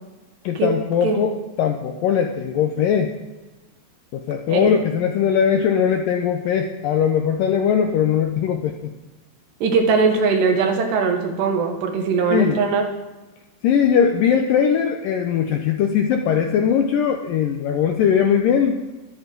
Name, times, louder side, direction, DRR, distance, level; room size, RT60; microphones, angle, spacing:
voice 1, 0.4-1.3 1.6-3.1 4.1-8.9 12.3-12.6 13.6-18.8, left 8 dB, 80° left, 4 dB, 2.0 m, -20 dB
voice 2, 9.6-12.8, right 5 dB, 75° right, 3 dB, 3.7 m, -20 dB
23.5 x 9.8 x 3.9 m, 1.1 s
omnidirectional pair, 4.9 m